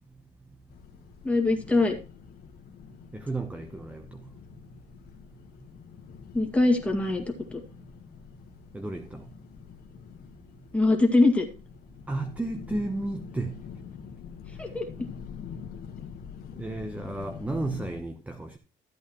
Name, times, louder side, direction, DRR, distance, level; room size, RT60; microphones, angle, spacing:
sound 1, 0.7-18.0, left 7 dB, 65° left, 1.4 m, -45 dB
voice 1, 1.2-2.0 6.3-7.2 7.5-7.6 10.7-11.5 14.6-15.1, left 2 dB, 5° left, 2.2 m, -23 dB
voice 2, 3.1-4.1 8.7-9.2 12.1-13.5 16.6-18.6, right 2 dB, 10° right, 0.9 m, -33 dB
13.5 x 8.4 x 3.0 m
cardioid pair, 110°, 17 cm